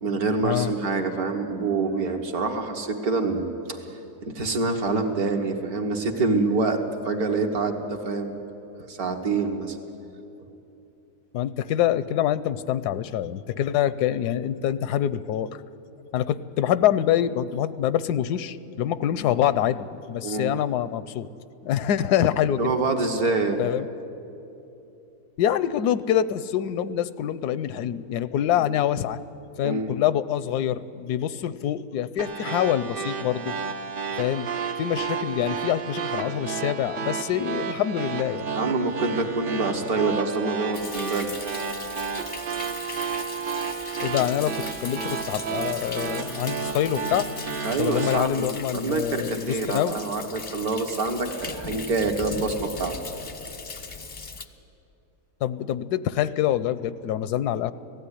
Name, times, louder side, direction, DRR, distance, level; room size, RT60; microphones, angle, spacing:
voice 1, 0.0-8.4 8.9-9.8 19.0-19.1 20.2-20.5 22.6-23.6 29.6-30.0 38.6-41.3 47.6-48.5 48.7-52.9, right 3 dB, 70° right, 3 dB, 2.0 m, -26 dB
voice 2, 11.3-15.6 16.1-21.3 21.6-22.6 23.6-23.9 25.4-29.2 29.6-33.5 34.2-34.5 34.8-38.5 44.0-47.3 47.8-50.0 55.4-57.7, left 11 dB, 85° left, 15 dB, 1.2 m, -25 dB
sound 1, 32.2-48.2, right 6 dB, 45° right, 0.7 m, -31 dB
Thunder, 40.7-54.5, left 4 dB, 35° left, 0.5 m, -39 dB
17.5 x 15.0 x 9.9 m, 2.8 s
omnidirectional pair, 1.7 m